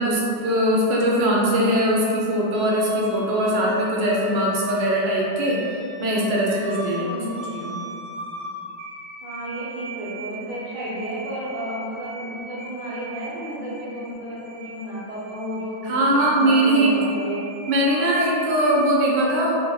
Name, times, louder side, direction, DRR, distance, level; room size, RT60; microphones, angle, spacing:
voice 1, 0.0-5.6 6.0-7.1 7.5-7.8 15.8-16.9 17.7-19.5, right 1 dB, 85° right, -4 dB, 1.3 m, -21 dB
sound 1, 2.5-18.9, right 1 dB, 60° right, 1.0 m, -39 dB
voice 2, 7.0-7.5 9.2-17.4, equal, 30° right, -9 dB, 0.7 m, -32 dB
4.2 x 2.6 x 3.0 m, 2.6 s
omnidirectional pair, 1.9 m